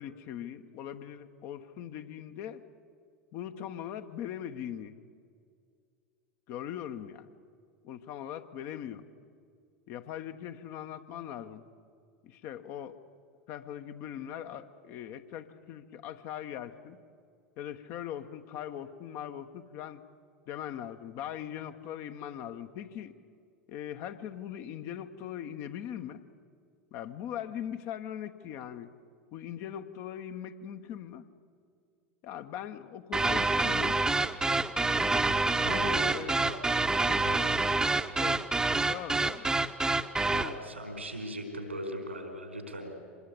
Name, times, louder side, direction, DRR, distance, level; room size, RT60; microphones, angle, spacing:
voice 1, 0.0-2.6 3.3-4.9 6.5-7.3 7.8-9.0 9.9-11.6 12.2-13.0 13.5-17.0 17.6-20.0 20.5-23.2 23.7-26.2 26.9-28.9 29.3-31.3 32.2-34.0 35.7-36.4 37.0-37.2 38.2-39.5, left 10 dB, 45° left, 8 dB, 1.2 m, -40 dB
sound 1, 33.1-40.6, right 3 dB, 10° right, 1.1 m, -27 dB
voice 2, 35.6-36.1 36.4-36.5 37.2-37.4 40.3-42.9, right 1 dB, 85° right, 5 dB, 4.5 m, -39 dB
25.5 x 20.0 x 8.7 m, 2.2 s
figure-of-eight pair, 80°, 6 cm